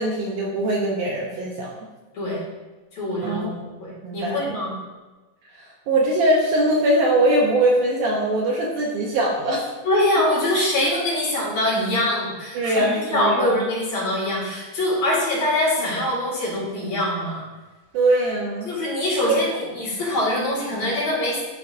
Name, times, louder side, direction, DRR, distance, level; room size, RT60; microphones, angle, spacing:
voice 1, 0.0-1.9 3.2-3.5 4.0-4.6 5.9-9.6 12.5-13.6 15.9-16.0 17.9-18.7 19.3-19.4, right 1 dB, 75° right, -3 dB, 2.1 m, -21 dB
voice 2, 2.9-3.5 3.8-4.7 9.8-17.4 18.6-21.4, left 1 dB, 50° left, -7 dB, 3.2 m, -23 dB
11.5 x 4.7 x 2.6 m, 1.2 s
omnidirectional pair, 4.2 m